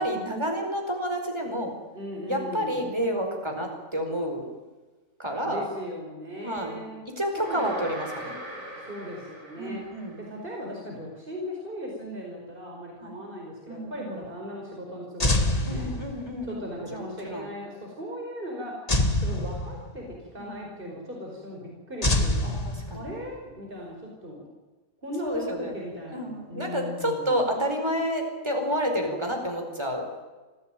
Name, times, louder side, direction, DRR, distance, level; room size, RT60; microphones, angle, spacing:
voice 1, 0.0-1.7 2.3-4.5 5.2-5.6 6.4-6.8 7.2-8.3 9.6-10.2 13.0-13.2 13.7-14.2 15.7-16.6 16.9-17.5 20.4-20.5 22.6-23.1 25.2-25.8 26.1-30.2, equal, 20° right, 3 dB, 4.8 m, -29 dB
voice 2, 1.9-2.8 5.4-7.0 7.4-7.9 8.8-9.8 10.2-15.9 16.5-18.9 19.2-22.5 22.9-24.5 25.0-27.4, equal, 40° right, -1 dB, 5.2 m, -38 dB
sound 1, 7.4-10.5, right 1 dB, 65° right, 7.9 m, -40 dB
sound 2, 15.2-16.5 18.9-20.2 22.0-23.3, left 1 dB, 25° left, 2.0 m, -26 dB
26.0 x 16.5 x 9.2 m, 1.2 s
omnidirectional pair, 1.5 m